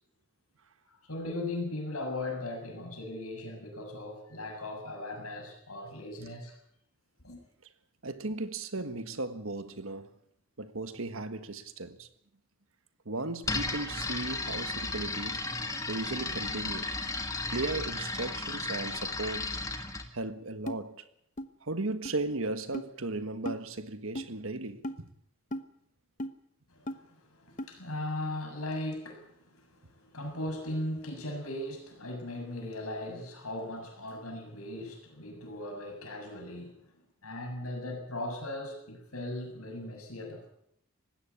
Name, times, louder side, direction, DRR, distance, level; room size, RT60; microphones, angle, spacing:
voice 1, 0.9-6.6 7.2-7.4 26.7-36.9 37.2-40.5, left 1 dB, 80° left, 7.1 m, -38 dB
voice 2, 8.0-10.1 10.6-12.1 13.0-15.5 15.9-16.9 17.4-19.5 20.1-21.0 21.6-25.1, right 2 dB, 70° right, 1.6 m, -36 dB
sound 1, 13.4-20.1, left 3 dB, 15° left, 1.7 m, -34 dB
sound 2, 20.7-20.8 21.4-21.5 22.0-22.1 22.7-22.9 23.5-23.6 24.1-24.3 24.8-25.0 25.5-25.7 26.2-26.3 26.9-27.0 27.6-27.7, equal, 35° left, 1.1 m, -36 dB
19.5 x 16.0 x 8.3 m
head